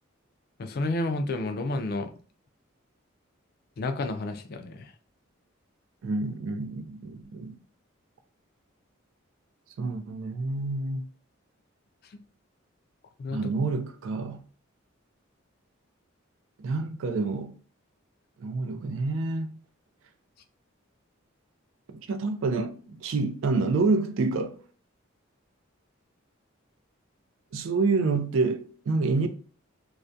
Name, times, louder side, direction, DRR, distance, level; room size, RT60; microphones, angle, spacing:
voice 1, 0.6-2.1 3.8-4.9 13.2-13.4, left 2 dB, 50° left, 0.3 m, -30 dB
voice 2, 6.0-7.6 9.8-11.0 13.3-14.4 16.6-17.6 18.4-19.6 21.9-24.6 27.5-29.3, right 3 dB, 70° right, 0.3 m, -28 dB
2.3 x 2.1 x 2.5 m
head